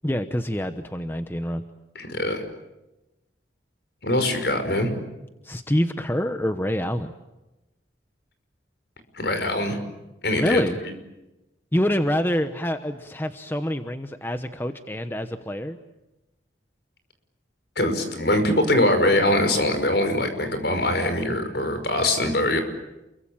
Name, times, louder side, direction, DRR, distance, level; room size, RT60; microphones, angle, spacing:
voice 1, 0.0-1.6 5.4-7.1 10.4-10.8 11.7-15.8, equal, 10° left, 9 dB, 1.0 m, -26 dB
voice 2, 2.0-2.4 4.0-4.9 9.1-9.8 10.2-10.9 17.8-22.6, left 1 dB, 60° left, 8 dB, 5.5 m, -23 dB
28.5 x 23.5 x 8.9 m, 0.98 s
head